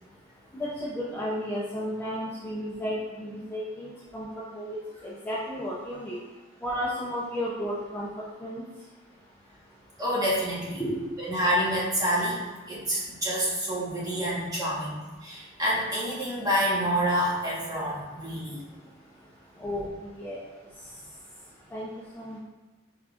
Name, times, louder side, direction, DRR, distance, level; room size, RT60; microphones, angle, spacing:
voice 1, 0.5-4.3 4.5-4.8 5.0-6.2 6.6-8.1 8.4-8.6 10.8-11.0 19.6-20.5 21.7-21.9 22.1-22.4, equal, 10° left, -7 dB, 0.4 m, -33 dB
voice 2, 10.0-10.8 11.2-18.6 19.6-19.7, equal, 20° right, -8 dB, 1.2 m, -28 dB
4.6 x 3.6 x 2.4 m, 1.2 s
head